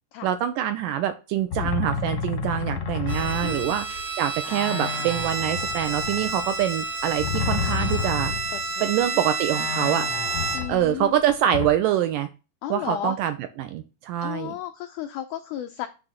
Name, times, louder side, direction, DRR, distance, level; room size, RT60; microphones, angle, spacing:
voice 1, 0.2-8.3 8.8-10.1 10.7-12.3 12.7-14.5, right 11 dB, 80° right, 9 dB, 2.0 m, -25 dB
sound 1, 1.5-4.1 4.4-8.7 9.0-9.1 9.5-11.7, left 6 dB, 70° left, 1.4 m, -31 dB
Bowed string instrument, 3.1-10.9, right 4 dB, 65° right, 1.2 m, -30 dB
voice 2, 3.4-3.8 8.5-9.2 10.5-11.1 12.6-13.2 14.2-15.9, left 12 dB, 90° left, 8 dB, 1.7 m, -34 dB
9.8 x 3.4 x 6.4 m, 0.31 s
omnidirectional pair, 4.4 m